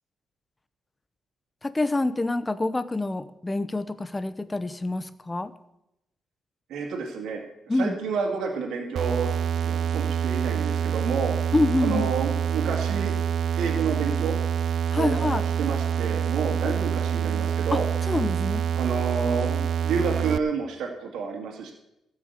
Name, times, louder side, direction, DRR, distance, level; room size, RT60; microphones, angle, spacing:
voice 1, 1.6-5.5 7.7-8.0 11.5-12.1 14.9-15.4 16.6-16.7 17.7-17.8 18.1-18.6 19.5-19.7, left 2 dB, 15° left, 13 dB, 0.8 m, -26 dB
voice 2, 6.7-7.4 7.7-9.3 9.6-11.4 11.8-13.1 13.6-14.4 15.0-17.9 18.8-19.5 19.8-21.7, right 5 dB, 80° right, 0 dB, 2.4 m, -29 dB
sound 1, 9.0-20.4, right 8 dB, 60° right, 0.4 m, -26 dB
14.5 x 6.5 x 8.3 m, 0.85 s
cardioid pair, 125°, 0 cm